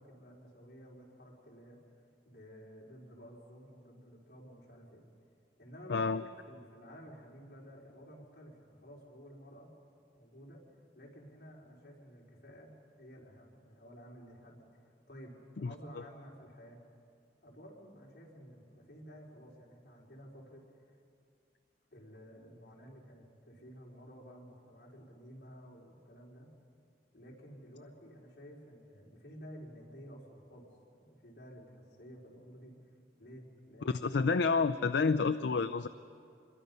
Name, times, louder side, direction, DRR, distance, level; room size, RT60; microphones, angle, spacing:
voice 1, 0.0-1.8 2.2-5.0 5.6-9.7 10.1-10.6 10.9-16.8 17.4-20.6 21.9-26.5 27.1-30.7 31.0-32.8 33.2-34.2 35.6-35.8, equal, 60° left, -4 dB, 4.4 m, -53 dB
voice 2, 5.9-6.2 15.6-15.7 33.8-35.9, left 4 dB, 80° left, 10 dB, 0.5 m, -29 dB
26.0 x 22.5 x 5.5 m, 2.4 s
head